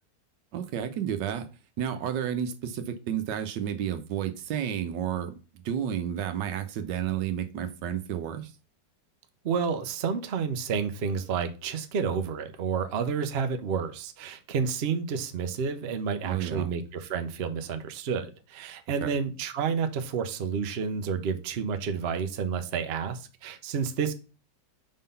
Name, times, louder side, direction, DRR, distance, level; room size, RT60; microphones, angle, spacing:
voice 1, 0.5-1.5 1.8-8.5 16.2-16.7 19.0-19.1, right 9 dB, 80° right, 1.4 m, -31 dB
voice 2, 9.4-24.1, right 6 dB, 55° right, 0.7 m, -30 dB
5.1 x 3.8 x 5.5 m
omnidirectional pair, 1.9 m